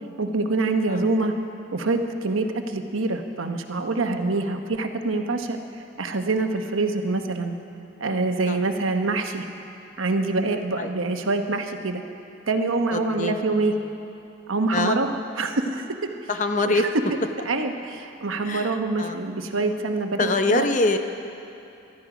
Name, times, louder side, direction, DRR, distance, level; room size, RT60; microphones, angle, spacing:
voice 1, 0.2-1.3 1.7-5.6 6.0-7.6 8.0-9.5 10.0-12.0 12.5-13.7 14.5-15.9 16.6-16.8 17.5-20.7, right 3 dB, 80° right, 6 dB, 1.0 m, -25 dB
voice 2, 12.9-13.4 13.8-13.9 14.7-15.0 16.3-16.9 18.4-19.2 20.2-21.0, left 2 dB, 40° left, 7 dB, 0.7 m, -24 dB
19.0 x 12.5 x 5.0 m, 2.7 s
head